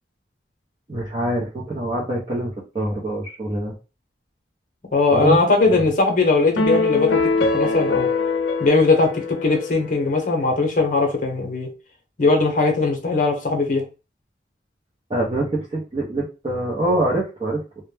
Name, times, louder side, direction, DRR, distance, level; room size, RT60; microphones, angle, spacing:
voice 1, 0.9-3.8 5.1-5.4 5.7-5.9 15.1-17.6, right 1 dB, 30° right, 0.6 m, -25 dB
voice 2, 4.9-8.1 8.6-11.7 12.2-13.8, left 3 dB, 45° left, 0.7 m, -19 dB
sound 1, 6.6-10.1, left 3 dB, 90° left, 0.5 m, -23 dB
2.1 x 2.1 x 3.1 m
head